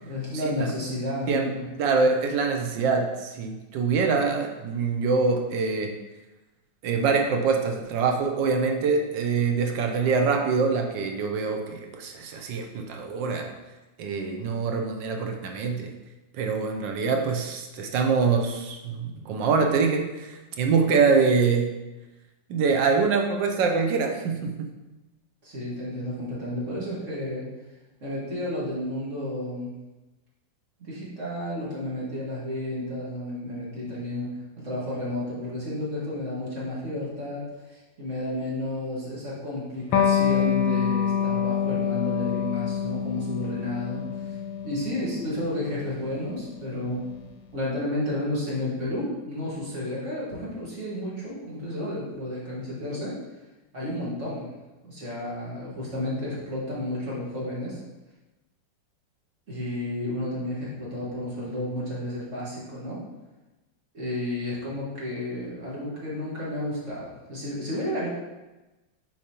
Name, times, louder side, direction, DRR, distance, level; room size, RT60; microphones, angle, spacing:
voice 1, 0.0-1.6 25.4-27.5 28.0-29.7 30.8-44.4 44.6-47.0 47.5-53.2 53.7-54.5 54.8-57.8 59.5-63.0 63.9-68.1, left 1 dB, 40° right, -6 dB, 2.0 m, -32 dB
voice 2, 1.8-5.9 6.8-13.5 14.0-15.9 16.3-21.7 22.5-24.7, right 4 dB, 75° right, 3 dB, 1.3 m, -24 dB
Electric guitar, 39.9-47.1, left 8 dB, 90° left, 1.4 m, -27 dB
7.2 x 4.5 x 2.9 m, 1.1 s
omnidirectional pair, 2.1 m